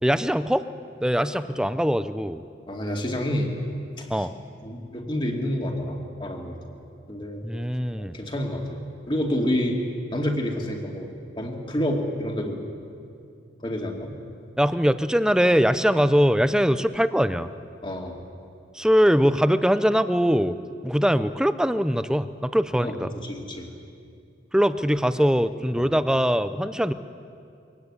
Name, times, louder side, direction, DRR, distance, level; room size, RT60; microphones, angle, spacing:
voice 1, 0.0-0.6 1.0-2.4 4.1-4.3 7.4-8.1 14.6-17.5 18.7-20.5 20.8-23.1 24.5-26.9, equal, 5° right, 12 dB, 0.6 m, -22 dB
voice 2, 2.7-3.5 4.0-4.3 4.6-6.7 7.1-7.4 8.0-8.8 9.1-9.8 10.1-12.6 13.6-14.1 17.8-18.2 22.8-23.0 23.2-23.7 25.8-25.9, left 1 dB, 25° left, 1 dB, 2.5 m, -28 dB
23.5 x 16.5 x 9.7 m, 2.4 s
head